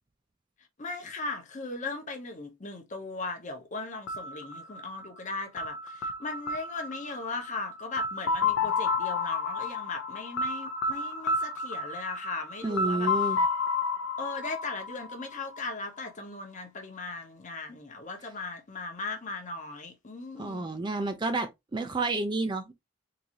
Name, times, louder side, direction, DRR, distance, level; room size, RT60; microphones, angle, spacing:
voice 1, 0.8-13.1 14.2-20.7, left 3 dB, 35° left, 0.8 m, -38 dB
sound 1, 4.1-15.9, left 3 dB, 65° left, 0.5 m, -31 dB
voice 2, 12.6-13.4 20.4-22.7, right 2 dB, 20° right, 0.4 m, -30 dB
3.8 x 2.6 x 2.9 m
head